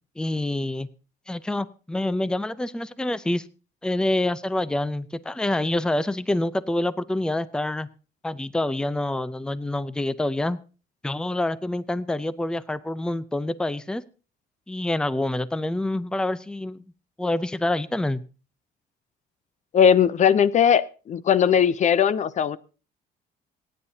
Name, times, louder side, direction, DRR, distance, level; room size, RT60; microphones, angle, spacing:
voice 1, 0.2-0.9 1.3-3.5 3.8-7.9 8.2-10.6 11.0-14.0 14.7-16.8 17.2-18.2, left 1 dB, 5° left, 16 dB, 0.6 m, -26 dB
voice 2, 19.7-22.6, left 8 dB, 45° left, 17 dB, 0.6 m, -19 dB
26.0 x 9.9 x 2.8 m, 0.35 s
cardioid pair, 110°, 17 cm